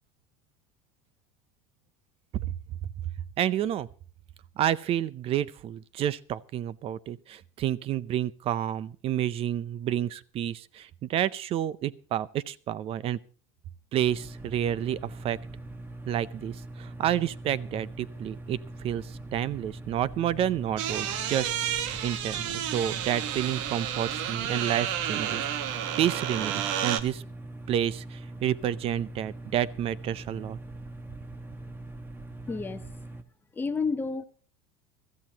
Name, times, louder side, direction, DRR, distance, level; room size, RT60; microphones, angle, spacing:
voice 1, 3.4-3.9 4.6-13.2 13.9-15.4 16.1-25.5 26.0-27.2 27.7-30.6, right 11 dB, 35° right, 0.6 m, -30 dB
sound 1, 14.0-33.2, right 2 dB, 15° right, 1.2 m, -42 dB
sound 2, 20.8-27.0, right 10 dB, 80° right, 1.3 m, -31 dB
voice 2, 32.5-32.9 33.5-34.2, left 4 dB, 10° left, 0.9 m, -30 dB
22.5 x 14.0 x 2.9 m
supercardioid pair, 140°, 16 cm